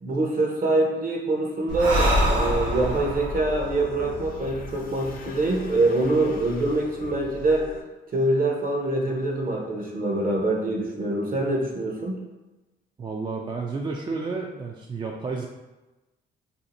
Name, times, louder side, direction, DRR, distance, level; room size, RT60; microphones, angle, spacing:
voice 1, 0.0-7.7 8.1-12.1, right 2 dB, 45° right, 0 dB, 0.9 m, -24 dB
Breathing, 1.7-5.2, equal, 85° right, 0.8 m, -26 dB
sound 1, 2.4-7.8, left 4 dB, 45° left, 0.5 m, -39 dB
voice 2, 13.0-15.5, right 4 dB, 25° right, 0 dB, 0.3 m, -31 dB
2.7 x 2.5 x 4.1 m, 1.1 s
cardioid pair, 90°, 20 cm